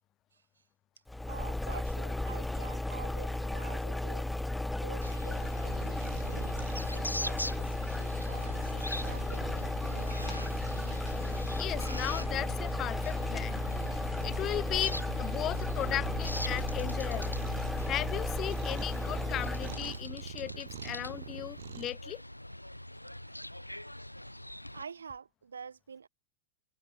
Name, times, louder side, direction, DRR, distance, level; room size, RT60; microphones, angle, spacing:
voice 1, 0.3-0.6 1.3-4.3 4.8-10.1 23.3-23.5 24.4-26.1, right 6 dB, 70° right, 1.2 m, -48 dB
sound 1, 1.1-20.0, left 2 dB, 5° left, 0.7 m, -34 dB
sound 2, 5.0-24.8, left 1 dB, 90° left, 0.6 m, -42 dB
Cat, 5.7-21.9, right 14 dB, 55° right, 0.5 m, -47 dB
voice 2, 11.6-13.6 13.9-17.4 17.8-22.2, left 12 dB, 30° left, 1.1 m, -36 dB
figure-of-eight pair, 90°, 0 cm